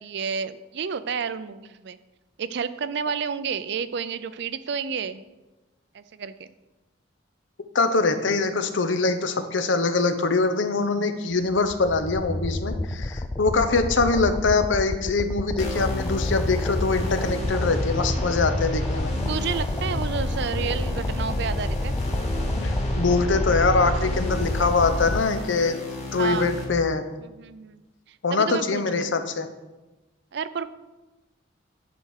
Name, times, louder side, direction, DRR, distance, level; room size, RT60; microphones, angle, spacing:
voice 1, 0.0-2.0 2.4-5.2 5.9-6.5 19.3-21.9 26.2-26.5 27.2-27.8 28.1-29.1 30.3-30.7, right 6 dB, 60° right, 14 dB, 0.5 m, -30 dB
voice 2, 7.7-19.1 22.6-25.8 26.1-27.0 28.2-29.5, left 3 dB, 75° left, 9 dB, 0.8 m, -23 dB
sound 1, 11.4-25.2, left 1 dB, 15° left, 0.4 m, -28 dB
sound 2, 15.6-26.6, left 1 dB, 35° left, 1.8 m, -32 dB
10.0 x 4.4 x 6.5 m, 1.1 s
head